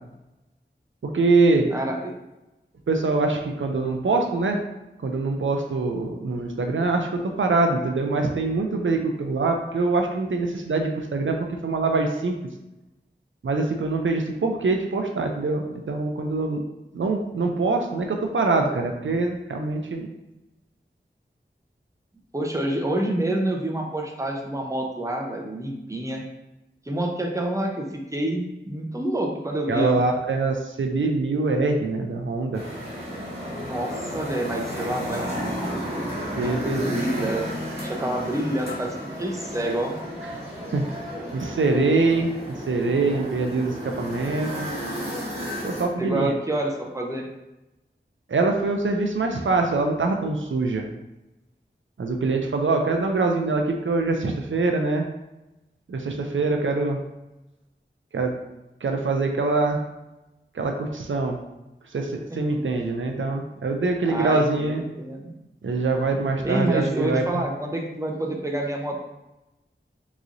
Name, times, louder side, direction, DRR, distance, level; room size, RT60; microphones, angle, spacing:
voice 1, 1.0-1.7 2.9-4.6 5.0-12.4 13.4-16.6 16.9-20.1 29.7-32.6 36.4-37.3 40.3-40.5 40.7-40.8 41.3-42.3 42.7-44.7 45.6-46.3 48.3-50.9 52.0-55.1 55.9-57.0 58.1-58.3 58.8-59.8 60.5-61.4 61.9-64.8 65.6-67.4, right 3 dB, 85° right, 3 dB, 0.4 m, -24 dB
voice 2, 1.7-2.1 22.3-26.2 26.9-27.8 28.1-30.0 33.5-35.8 36.3-37.4 37.8-40.0 46.0-47.3 64.1-65.3 66.4-69.0, right 1 dB, 15° right, 1 dB, 0.6 m, -28 dB
sound 1, 32.5-45.8, equal, 30° right, 1.4 m, -32 dB
3.7 x 3.0 x 2.5 m, 0.97 s
wide cardioid pair, 45°, 20 cm